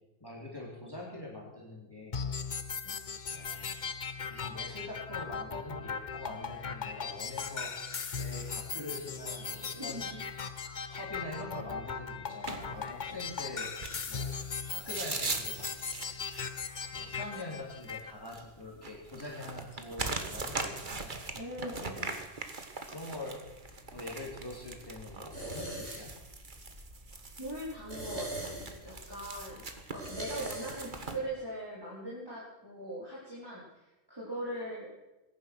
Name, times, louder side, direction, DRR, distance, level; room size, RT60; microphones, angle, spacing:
voice 1, 0.2-2.2 3.3-3.8 4.2-7.7 8.2-10.0 10.9-13.7 14.1-14.4 14.7-15.7 16.9-21.1 22.9-23.4 23.9-26.1, left 2 dB, 20° left, -3 dB, 4.0 m, -44 dB
sound 1, 2.1-18.1, left 5 dB, 45° left, 1.1 m, -38 dB
voice 2, 9.8-10.2 13.1-13.3 21.3-22.1 27.4-29.6 29.9-34.9, right 1 dB, 20° right, -7 dB, 4.4 m, -41 dB
sound 2, 12.4-31.2, right 3 dB, 50° right, 1.6 m, -41 dB
sound 3, 23.4-31.0, right 1 dB, 85° right, 5.8 m, -44 dB
20.5 x 10.5 x 6.3 m, 0.99 s
omnidirectional pair, 1.1 m